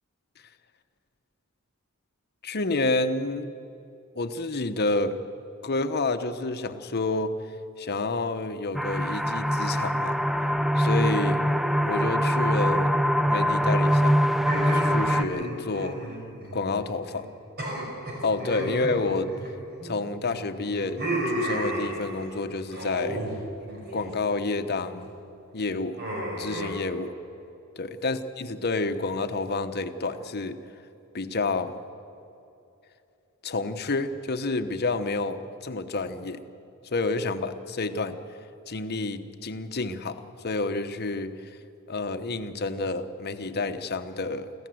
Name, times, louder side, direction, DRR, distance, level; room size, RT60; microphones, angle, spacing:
voice 1, 2.4-3.5 4.1-5.2 5.6-7.3 7.8-10.2 10.8-11.4 11.8-12.9 13.3-14.2 14.7-16.0 16.5-17.3 18.2-19.3 19.8-21.0 21.3-23.2 23.9-25.1 25.5-26.0 26.4-27.1 27.8-30.6 31.1-31.7 33.4-36.4 36.8-38.2 38.7-41.3 41.9-44.5, left 3 dB, 45° left, 9 dB, 1.0 m, -29 dB
sound 1, 8.7-15.2, equal, ahead, 0.5 m, -23 dB
sound 2, 14.4-16.9 17.1-17.3 17.6-19.9 20.3-22.3 22.7-23.3 23.6-24.1 24.6-25.0 26.0-26.7, right 1 dB, 45° right, 5.2 m, -33 dB
24.5 x 15.5 x 7.8 m, 2.8 s
head